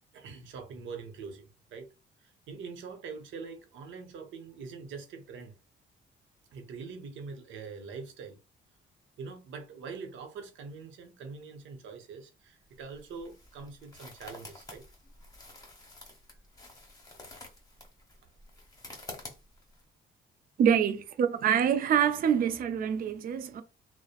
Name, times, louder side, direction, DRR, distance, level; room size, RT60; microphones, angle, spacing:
voice 1, 0.1-1.9 2.2-5.5 6.5-8.4 9.2-14.8, right 5 dB, 75° right, 0.7 m, -44 dB
sound 1, 12.6-19.8, left 2 dB, 20° left, 1.1 m, -49 dB
voice 2, 20.6-23.6, right 8 dB, 45° right, 0.4 m, -26 dB
2.7 x 2.0 x 2.4 m
cardioid pair, 90°, 20 cm